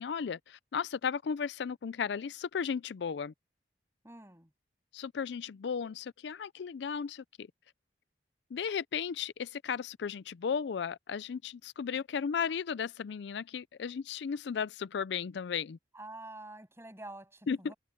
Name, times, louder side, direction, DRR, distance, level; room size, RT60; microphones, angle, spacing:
voice 1, 0.0-3.3 4.9-7.5 8.5-15.8 17.5-17.7, left 6 dB, 70° left, 0.4 m, -35 dB
voice 2, 4.0-4.5 15.9-17.7, right 2 dB, 15° right, 7.6 m, -47 dB
head